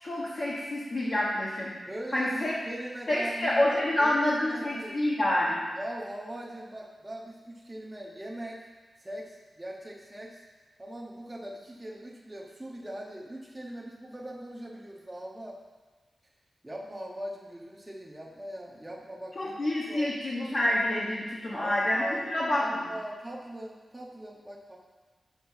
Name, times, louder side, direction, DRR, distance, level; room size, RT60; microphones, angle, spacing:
voice 1, 0.0-1.7 2.1-2.5 3.1-5.6 19.4-22.0 22.3-22.9, left 1 dB, 40° left, -7 dB, 1.1 m, -27 dB
voice 2, 1.9-5.0 5.8-8.6 9.0-10.4 10.8-15.6 16.6-19.5 19.9-20.1 21.5-24.8, right 1 dB, 10° right, -4 dB, 0.9 m, -41 dB
6.0 x 5.8 x 5.6 m, 1.3 s
wide cardioid pair, 165°, 0 cm